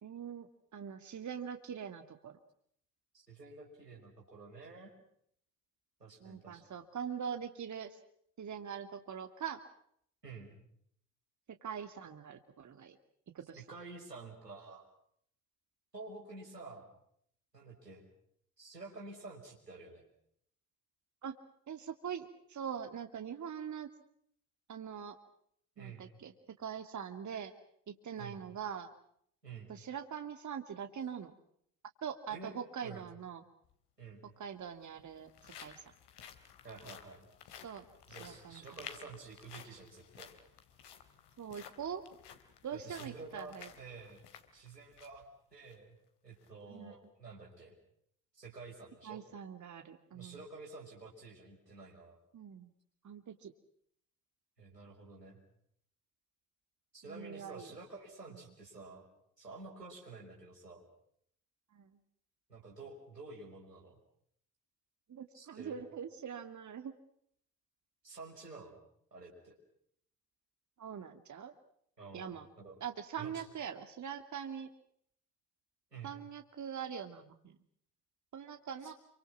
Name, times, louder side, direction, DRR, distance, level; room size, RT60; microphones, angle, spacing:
voice 1, 0.0-2.4 6.2-8.0 8.4-9.6 11.5-13.0 13.3-13.6 21.2-21.4 21.7-23.9 24.7-25.2 25.8-27.5 27.9-28.9 29.7-31.3 32.0-33.4 34.4-35.8 37.6-38.9 41.4-42.0 42.6-43.7 46.7-46.9 49.0-50.4 52.3-52.7 53.0-53.5 57.1-57.7 61.7-62.0 65.1-66.9 70.8-71.5 72.1-72.5 72.8-74.7 76.0-77.6 78.3-78.9, right 7 dB, 35° right, 7 dB, 2.6 m, -43 dB
voice 2, 3.3-4.9 6.0-6.7 10.2-10.6 13.6-14.9 15.9-16.9 17.5-18.1 18.6-20.0 25.8-26.1 28.2-28.4 29.4-29.7 32.3-32.5 32.8-33.1 34.0-34.3 36.6-37.3 38.1-40.3 42.7-44.2 44.5-45.2 45.5-46.0 46.2-47.8 48.3-49.3 50.1-52.2 54.6-55.4 56.9-59.1 59.4-60.8 62.5-64.0 65.3-65.8 68.0-68.8 69.1-69.6 72.0-72.8 73.2-73.5 75.9-76.2 78.8-78.9, right 3 dB, 90° right, -1 dB, 5.8 m, -50 dB
sound 1, 33.6-33.7 34.7-45.2 45.6-45.7 46.3-46.5, left 8 dB, 55° left, 3.6 m, -54 dB
28.5 x 25.5 x 6.0 m, 0.69 s
figure-of-eight pair, 50°, 47 cm